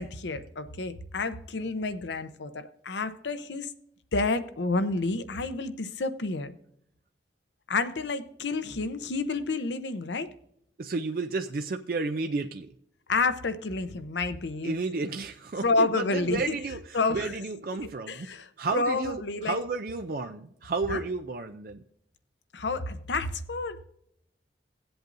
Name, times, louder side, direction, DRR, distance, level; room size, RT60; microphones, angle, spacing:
voice 1, 0.0-3.7 4.1-6.5 7.7-10.3 13.1-14.7 15.6-16.5 16.9-17.3 18.1-19.6 20.9-21.0 22.5-23.8, left 3 dB, 80° left, 0.7 m, -29 dB
voice 2, 10.8-12.7 14.6-18.3 18.6-21.8, right 3 dB, 50° right, 0.4 m, -32 dB
18.0 x 7.9 x 2.6 m
head